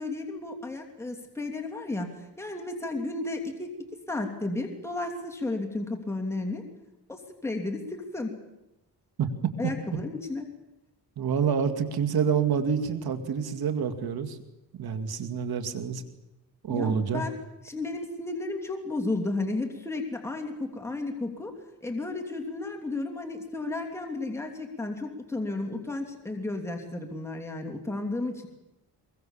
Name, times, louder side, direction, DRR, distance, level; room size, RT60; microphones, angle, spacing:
voice 1, 0.0-3.7 4.1-6.6 7.1-8.3 9.6-10.5 16.7-17.3 17.6-28.5, left 2 dB, 5° left, 2 dB, 2.9 m, -33 dB
voice 2, 11.2-14.4 14.8-16.0 16.6-17.2, right 7 dB, 65° right, 8 dB, 2.5 m, -27 dB
22.5 x 22.5 x 7.3 m, 0.92 s
cardioid pair, 105°, 39 cm